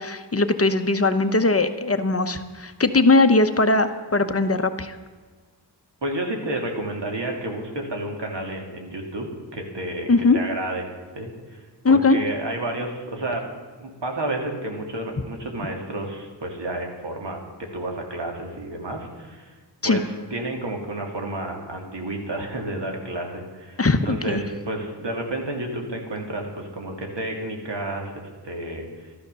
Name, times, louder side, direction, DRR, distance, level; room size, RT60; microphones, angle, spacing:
voice 1, 0.0-5.0 10.1-10.4 11.8-12.2 19.8-20.0 23.8-24.4, left 3 dB, 35° left, 9 dB, 0.9 m, -20 dB
voice 2, 6.0-10.9 11.1-11.6 11.9-13.4 13.8-19.5 19.8-29.1, right 1 dB, 75° right, 1 dB, 2.7 m, -31 dB
13.5 x 12.5 x 6.9 m, 1.4 s
wide cardioid pair, 95°, 42 cm